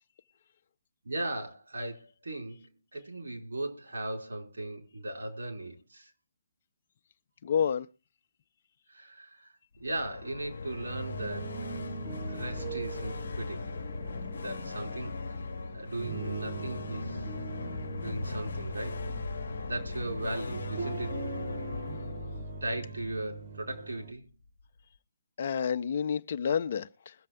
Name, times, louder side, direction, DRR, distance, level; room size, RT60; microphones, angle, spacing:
voice 1, 1.0-6.1 8.9-9.5 9.8-11.5 12.3-13.6 14.3-15.2 15.7-17.3 17.9-19.1 19.6-21.2 22.6-24.3, right 1 dB, 70° right, 4.3 m, -37 dB
voice 2, 7.4-7.9 25.4-27.1, left 7 dB, 50° left, 0.7 m, -29 dB
sound 1, 9.8-23.8, left 3 dB, 65° left, 1.0 m, -38 dB
sound 2, 10.7-24.1, right 5 dB, 40° right, 1.3 m, -42 dB
21.5 x 7.4 x 3.5 m
figure-of-eight pair, 135°, 0 cm